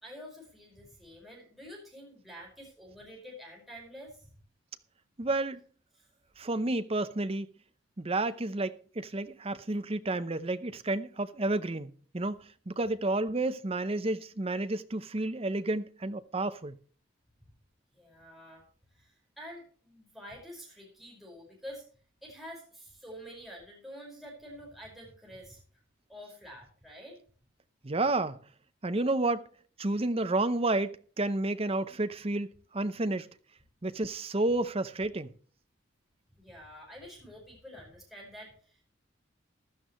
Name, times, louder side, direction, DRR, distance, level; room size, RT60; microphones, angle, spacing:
voice 1, 0.0-4.3 5.9-6.1 17.9-18.6 18.9-21.8 22.2-25.6 26.1-27.2 36.4-38.8, equal, ahead, 5.3 m, -48 dB
voice 2, 5.2-5.6 6.4-7.5 8.0-16.8 27.8-28.4 28.8-29.5 29.8-33.3 33.8-35.3, right 2 dB, 30° right, 0.7 m, -31 dB
15.5 x 12.0 x 3.1 m
head